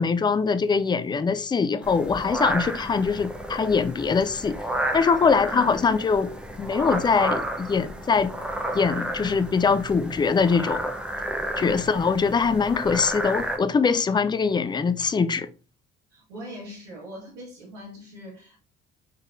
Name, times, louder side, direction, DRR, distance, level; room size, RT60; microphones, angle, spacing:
voice 1, 0.0-4.6 4.9-6.3 6.6-8.3 8.7-10.8 11.6-15.5, left 5 dB, 15° left, 0.3 m, -22 dB
sound 1, 1.8-13.6, right 1 dB, 5° right, 0.8 m, -32 dB
voice 2, 5.5-5.8 16.1-18.6, left 1 dB, 75° right, 1.7 m, -41 dB
5.2 x 3.9 x 2.5 m
figure-of-eight pair, 50°, 37 cm